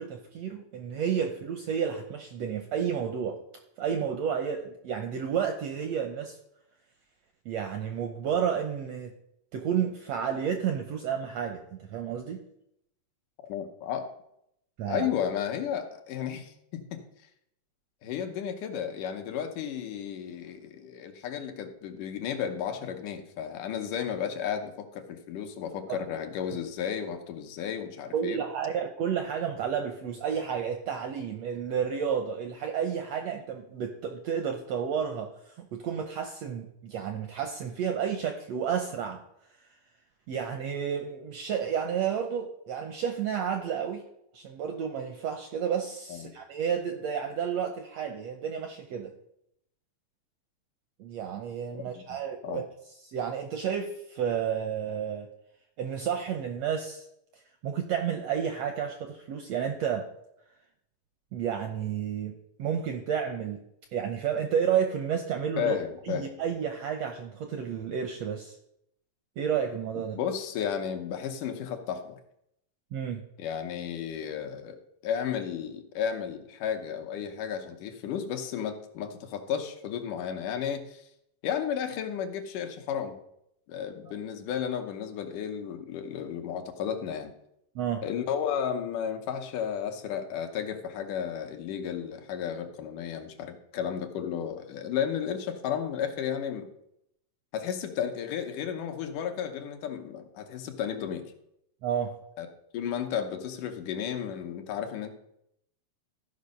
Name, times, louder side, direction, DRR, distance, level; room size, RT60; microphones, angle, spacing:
voice 1, 0.0-3.4 3.8-6.4 7.4-9.1 9.5-12.4 14.8-15.1 25.9-26.0 28.1-39.2 40.3-44.0 44.3-49.1 51.0-52.6 53.0-55.3 55.8-57.0 57.6-60.0 61.3-62.3 62.6-63.6 63.9-65.7 66.0-68.5 69.4-70.1 72.9-73.2 87.7-88.0 101.8-102.1, right 8 dB, 80° right, 4 dB, 1.5 m, -31 dB
voice 2, 13.5-14.1 14.9-17.0 18.0-28.4 46.1-46.3 52.0-52.2 52.4-52.6 65.6-66.3 70.1-72.2 73.4-74.8 75.0-81.0 81.4-83.2 83.7-87.3 88.0-96.7 97.5-101.2 102.4-102.5 102.7-105.1, left 8 dB, 75° left, 6 dB, 2.4 m, -33 dB
13.0 x 5.2 x 5.3 m, 0.78 s
omnidirectional pair, 3.8 m